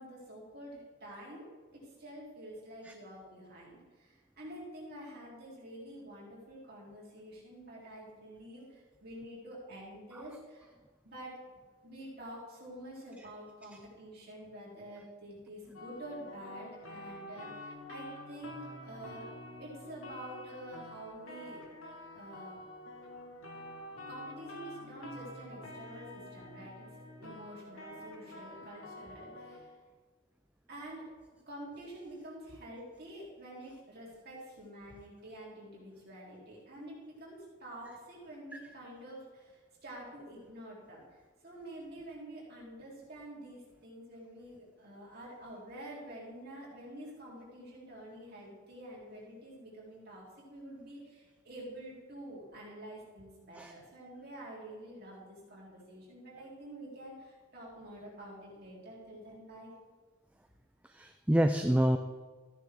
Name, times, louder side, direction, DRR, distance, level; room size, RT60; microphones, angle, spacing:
voice 1, 0.0-1.5 1.7-10.7 11.0-11.4 11.8-19.3 19.6-21.6 22.1-22.6 24.1-26.9 27.2-29.8 30.7-31.1 31.5-59.7, right 1 dB, 45° right, -5 dB, 3.8 m, -48 dB
sound 1, 15.7-29.6, left 1 dB, 85° left, 1.7 m, -48 dB
voice 2, 60.9-62.0, right 1 dB, 5° right, 6 dB, 0.3 m, -28 dB
14.5 x 9.5 x 3.8 m, 1.4 s
head